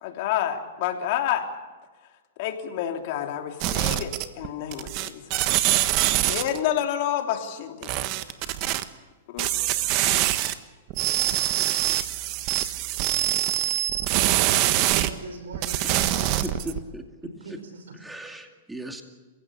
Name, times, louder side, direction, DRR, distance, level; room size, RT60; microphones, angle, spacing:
voice 1, 0.0-1.5 2.4-5.6 6.2-8.0 9.3-9.5, left 10 dB, 50° left, 4 dB, 3.1 m, -29 dB
sound 1, 3.6-4.5 4.7-6.6 7.8-8.8 9.4-10.5 10.9-15.1 15.5-16.8, right 14 dB, 45° right, 1.3 m, -24 dB
voice 2, 14.3-16.7 17.2-18.0, right 3 dB, 90° right, 7 dB, 6.1 m, -42 dB
voice 3, 16.4-17.0 18.0-19.0, right 1 dB, 5° right, 4 dB, 2.4 m, -36 dB
28.5 x 16.0 x 8.6 m, 1.3 s
hypercardioid pair, 135°, 0 cm